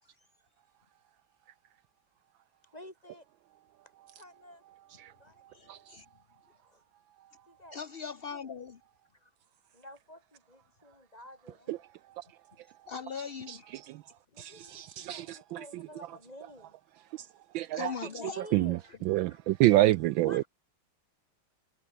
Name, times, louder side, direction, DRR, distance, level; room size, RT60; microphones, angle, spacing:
voice 1, 2.7-3.3 4.2-4.6 5.2-5.4 5.7-5.8 6.6-6.8 7.5-7.8 9.2-9.3 9.7-11.9 14.3-16.7 17.6-19.0 19.3-19.4 20.3-20.5, left 1 dB, 15° left, 7.4 m, -50 dB
voice 2, 5.5-6.1 7.7-8.8 12.9-13.7 17.7-18.4, left 6 dB, 40° left, 0.8 m, -40 dB
voice 3, 13.5-14.0 14.4-15.8 17.1-17.3 17.5-17.9 18.5-20.4, right 16 dB, 75° right, 1.2 m, -28 dB
omnidirectional pair, 2.3 m